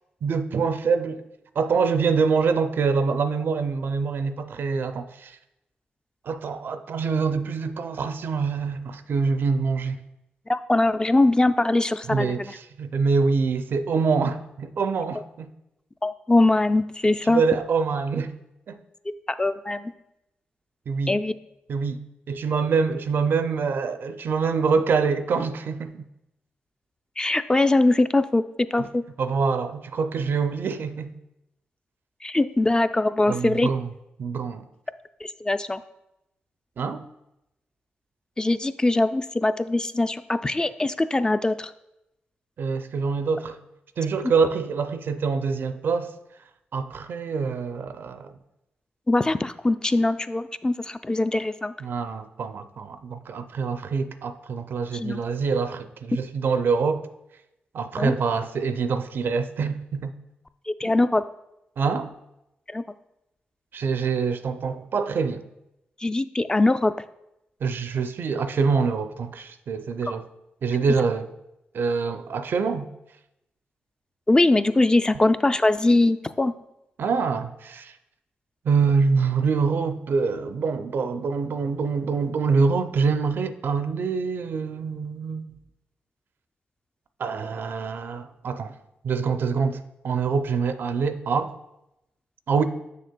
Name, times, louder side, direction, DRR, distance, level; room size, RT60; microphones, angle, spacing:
voice 1, 0.2-1.2 1.6-5.4 6.2-10.0 12.1-15.5 17.2-18.3 18.7-18.8 20.9-21.2 21.7-22.0 22.3-26.1 28.8-28.9 29.2-31.1 33.3-33.9 34.2-34.7 36.8-37.0 42.6-43.6 44.0-46.2 46.7-48.3 51.8-57.1 57.7-60.1 61.8-62.1 63.7-65.4 67.6-70.2 70.6-71.3 71.7-72.9 77.0-77.9 78.6-85.6 87.2-88.7 89.0-91.5 92.5-92.6, right 5 dB, 65° right, 0.4 m, -25 dB
voice 2, 10.5-12.6 16.0-17.4 19.4-19.9 21.1-21.3 27.2-28.4 28.7-29.0 32.2-33.7 35.2-35.8 38.4-41.7 49.1-51.7 54.9-55.2 58.0-58.1 60.7-61.2 62.7-62.8 66.0-66.9 74.3-76.5, left 2 dB, 20° left, 0.3 m, -22 dB
7.0 x 6.5 x 2.2 m
cardioid pair, 55°, 4 cm